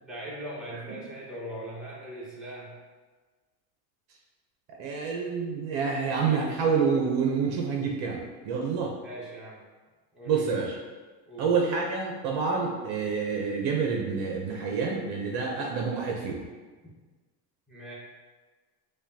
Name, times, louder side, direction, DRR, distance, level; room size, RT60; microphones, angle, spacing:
voice 1, 0.0-2.7 9.0-9.6 10.1-10.5 11.3-11.5 17.7-17.9, right 1 dB, ahead, -7 dB, 1.0 m, -40 dB
voice 2, 4.8-8.9 10.3-10.7 11.4-16.5, right 5 dB, 50° right, 0 dB, 0.7 m, -28 dB
4.9 x 2.3 x 2.7 m, 1.3 s
supercardioid pair, 110°, 49 cm